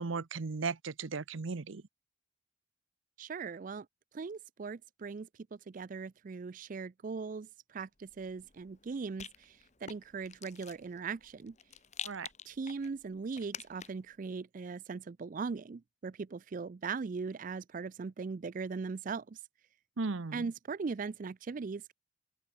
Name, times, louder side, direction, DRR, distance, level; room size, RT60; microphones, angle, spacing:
voice 1, 0.0-1.8 12.0-12.3 20.0-20.5, right 4 dB, 70° right, 0.7 m, -36 dB
voice 2, 3.2-3.9 4.1-5.3 5.7-11.5 12.5-19.4 20.3-21.9, right 5 dB, 40° right, 0.4 m, -39 dB
Rattle, 8.0-14.1, left 8 dB, 35° left, 1.6 m, -49 dB
open air
head